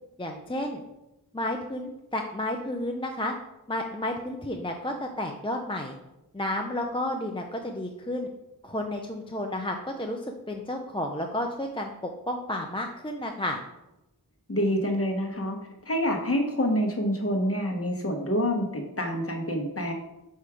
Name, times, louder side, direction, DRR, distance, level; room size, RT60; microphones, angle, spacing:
voice 1, 0.2-0.8 1.3-3.3 3.7-6.0 6.3-8.3 8.6-10.2 10.5-11.9 12.3-13.6, left 1 dB, 15° left, 2 dB, 0.5 m, -31 dB
voice 2, 14.5-15.6 15.8-19.9, equal, 35° left, 1 dB, 1.1 m, -27 dB
4.7 x 4.3 x 4.9 m, 0.92 s
wide cardioid pair, 50°, 38 cm